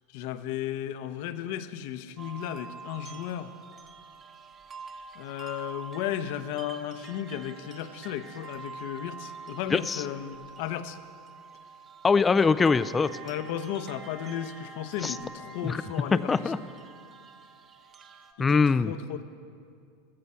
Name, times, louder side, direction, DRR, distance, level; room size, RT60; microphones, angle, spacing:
voice 1, 0.1-3.5 5.1-11.0 13.2-16.7 18.4-19.2, left 10 dB, 60° left, 11 dB, 0.8 m, -35 dB
sound 1, 2.2-18.3, right 4 dB, 25° right, 1.1 m, -46 dB
voice 2, 9.7-10.0 12.0-13.1 15.0-15.1 15.6-15.8 16.1-16.6 18.4-18.9, left 5 dB, 15° left, 15 dB, 0.4 m, -23 dB
16.5 x 13.5 x 5.6 m, 2.3 s
supercardioid pair, 140°, 0 cm